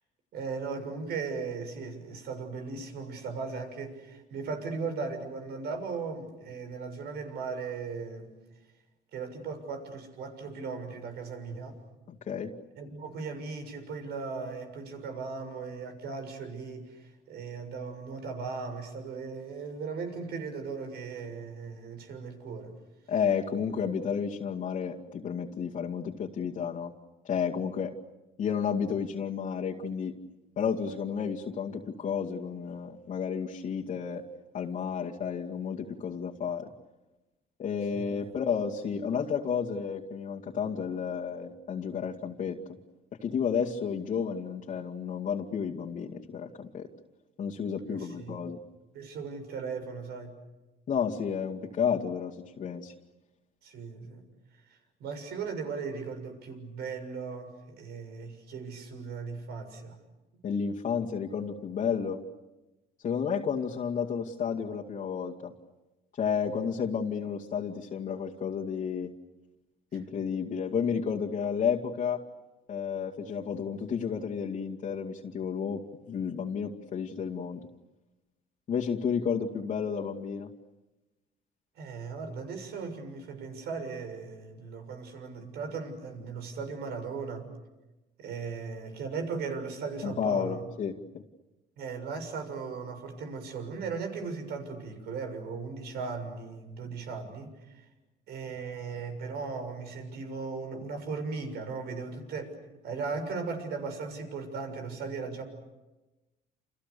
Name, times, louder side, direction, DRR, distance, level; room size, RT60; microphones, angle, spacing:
voice 1, 0.3-8.3 9.1-11.8 12.8-22.8 37.9-38.3 47.9-48.4 48.9-50.4 53.6-54.2 54.7-60.0 66.4-66.6 81.8-87.5 88.2-90.6 91.8-97.8 98.3-102.6 102.8-105.4, right 4 dB, 75° right, 7 dB, 6.7 m, -37 dB
voice 2, 12.1-12.5 23.1-26.9 27.2-27.9 28.4-30.1 30.6-34.3 34.5-36.7 37.6-42.6 43.2-46.9 47.4-48.6 50.9-52.9 60.4-62.2 63.0-65.5 66.2-69.1 69.9-72.2 72.7-77.6 78.7-80.5 90.0-91.2, left 7 dB, 50° left, -4 dB, 2.3 m, -31 dB
29.5 x 29.0 x 7.0 m, 1.1 s
cardioid pair, 110°, 17 cm